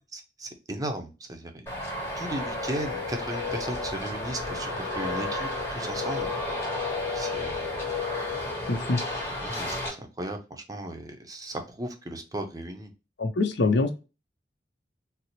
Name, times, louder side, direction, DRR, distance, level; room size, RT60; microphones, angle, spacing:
voice 1, 0.1-1.7 2.2-6.3 7.1-7.7 9.4-12.9, right 1 dB, 20° right, 5 dB, 0.6 m, -36 dB
Traffic noise roadway noise, 1.7-9.9, left 2 dB, 15° left, 1.1 m, -32 dB
voice 2, 8.7-9.0 13.2-13.9, left 3 dB, 65° left, 7 dB, 0.6 m, -24 dB
4.1 x 2.0 x 2.8 m, 0.30 s
head